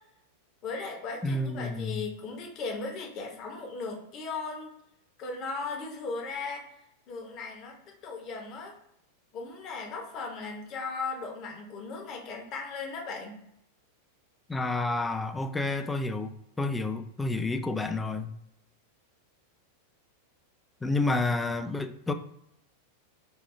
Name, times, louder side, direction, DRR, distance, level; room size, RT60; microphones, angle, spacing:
voice 1, 0.6-4.7 5.2-6.7 7.1-7.8 8.0-8.7 9.3-13.4, left 4 dB, 35° left, 0.9 m, -37 dB
voice 2, 1.2-2.0 14.5-18.3 20.8-22.1, left 2 dB, 10° left, 0.3 m, -30 dB
3.0 x 2.2 x 3.7 m
figure-of-eight pair, 90°, 0 cm